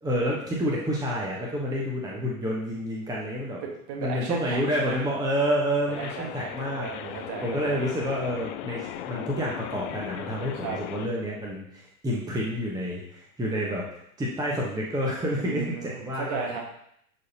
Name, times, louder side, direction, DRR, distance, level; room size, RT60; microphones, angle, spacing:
voice 1, 0.0-3.6 4.0-6.9 7.4-13.8 14.2-16.6, equal, 10° right, -3 dB, 1.1 m, -29 dB
voice 2, 3.6-5.0 5.9-7.8 10.5-10.8 15.4-16.6, right 6 dB, 45° right, 0 dB, 1.7 m, -35 dB
sound 1, 5.9-11.1, left 12 dB, 35° left, 0.5 m, -38 dB
11.0 x 4.1 x 2.9 m, 0.70 s
figure-of-eight pair, 95°, 44 cm